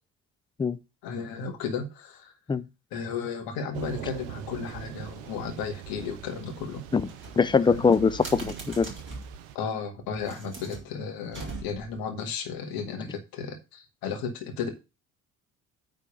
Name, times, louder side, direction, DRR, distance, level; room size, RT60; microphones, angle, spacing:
voice 1, 1.0-2.3 2.9-6.8 7.6-7.8 9.6-14.7, left 5 dB, 55° left, 1.9 m, -34 dB
Thunder / Rain, 3.7-9.6, right 9 dB, 65° right, 0.8 m, -42 dB
sound 1, 7.0-9.4 10.1-12.0, right 3 dB, 25° right, 4.2 m, -42 dB
voice 2, 7.4-8.9, left 5 dB, 10° left, 0.5 m, -22 dB
9.0 x 3.7 x 6.7 m
figure-of-eight pair, 50°, 43 cm